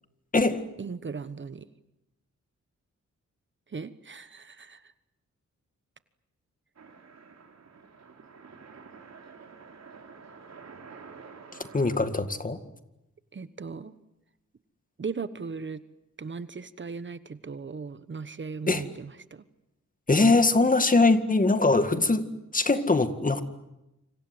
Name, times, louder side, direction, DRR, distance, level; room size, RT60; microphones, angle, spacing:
voice 1, 0.8-1.7 3.7-4.9 13.3-13.9 15.0-15.8 16.2-19.4, right 5 dB, 40° right, 13 dB, 1.2 m, -37 dB
sound 1, 6.8-12.1, right 5 dB, 60° right, 4.4 m, -49 dB
voice 2, 11.7-12.6 18.7-18.8 20.1-22.2 22.5-23.4, left 3 dB, 25° left, 10 dB, 2.1 m, -22 dB
28.5 x 26.5 x 7.9 m, 0.91 s
wide cardioid pair, 115°, 30 cm